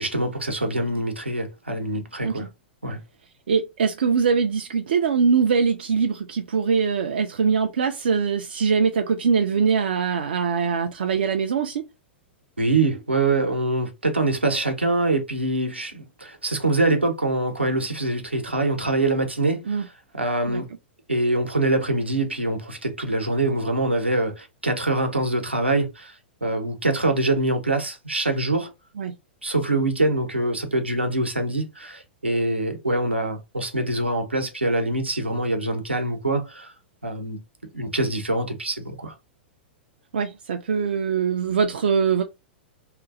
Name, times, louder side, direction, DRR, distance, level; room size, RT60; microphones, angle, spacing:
voice 1, 0.0-2.5 2.8-3.0 12.6-19.9 20.1-20.7 21.1-26.1 26.4-28.7 29.4-36.7 37.0-37.4 37.7-39.1, right 2 dB, 85° right, 0.8 m, -24 dB
voice 2, 3.5-11.8 19.7-19.9 20.5-20.6 29.0-29.1 40.1-42.2, right 6 dB, 60° right, 0.4 m, -22 dB
2.9 x 2.5 x 2.4 m
figure-of-eight pair, 100°, 6 cm